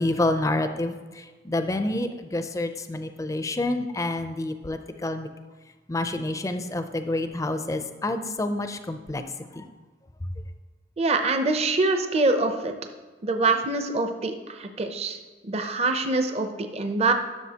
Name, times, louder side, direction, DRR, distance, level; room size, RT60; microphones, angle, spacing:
voice 1, 0.0-5.3 5.9-9.2 9.5-9.6, left 2 dB, 15° left, 8 dB, 0.4 m, -28 dB
voice 2, 11.0-12.7 13.2-15.2 15.4-17.1, right 3 dB, 35° right, 6 dB, 0.6 m, -24 dB
11.5 x 6.4 x 2.8 m, 1.3 s
head